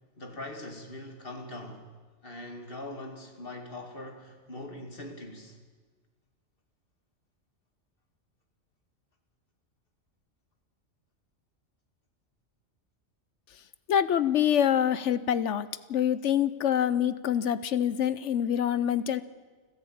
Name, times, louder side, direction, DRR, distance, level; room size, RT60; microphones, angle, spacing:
voice 1, 0.2-1.9 2.2-5.6, left 1 dB, 50° left, 4 dB, 2.6 m, -42 dB
voice 2, 13.9-19.2, left 9 dB, 75° left, 15 dB, 1.1 m, -26 dB
29.5 x 10.5 x 8.7 m, 1.4 s
omnidirectional pair, 1.2 m